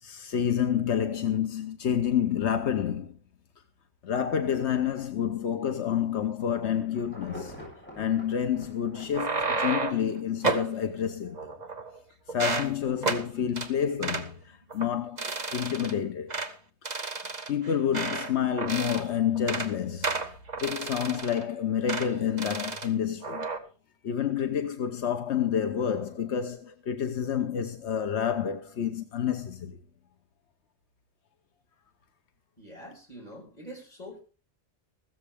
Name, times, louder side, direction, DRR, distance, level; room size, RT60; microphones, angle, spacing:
voice 1, 0.0-3.2 4.0-7.5 8.0-11.5 12.3-16.3 17.5-20.3 20.6-23.5 24.0-29.8, left 9 dB, 85° left, 1.2 m, -29 dB
Insect / Thunder / Rain, 6.6-10.8 11.3-11.4, left 1 dB, 10° left, 7.8 m, -46 dB
sound 1, 8.9-10.1 10.4-10.7 11.3-12.0 12.3-12.7 13.0-13.2 13.6-13.7 14.0-14.3 14.7-14.9 15.2-15.9 16.3-16.5 16.8-18.3 18.6-19.1 19.4-19.7 20.0-21.4 21.9-22.1 22.4-22.9 23.2-23.6, right 3 dB, 40° right, 1.4 m, -31 dB
voice 2, 32.6-34.2, equal, 35° left, 6.0 m, -45 dB
15.5 x 14.0 x 3.5 m
omnidirectional pair, 1.1 m